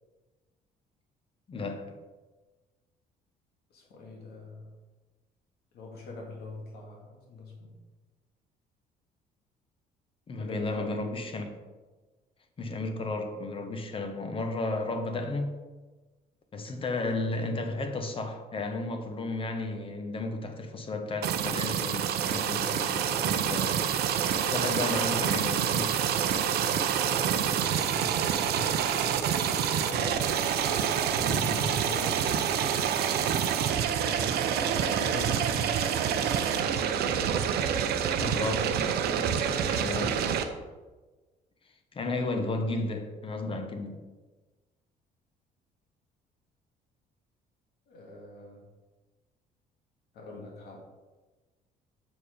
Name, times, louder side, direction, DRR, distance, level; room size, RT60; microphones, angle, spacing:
voice 1, 1.5-2.0 10.3-11.6 12.6-15.5 16.5-23.8 24.2-26.1 38.2-38.9 39.2-40.3 41.9-44.0, left 2 dB, 30° left, 1.0 m, -33 dB
voice 2, 3.7-4.7 5.7-7.7 10.4-10.9 27.1-28.8 29.9-32.2 34.6-35.7 47.9-48.6 50.1-50.8, left 2 dB, 70° left, 2.1 m, -42 dB
sound 1, 21.2-40.4, right 8 dB, 70° right, 0.7 m, -27 dB
7.0 x 4.6 x 5.1 m
cardioid pair, 110°, 17 cm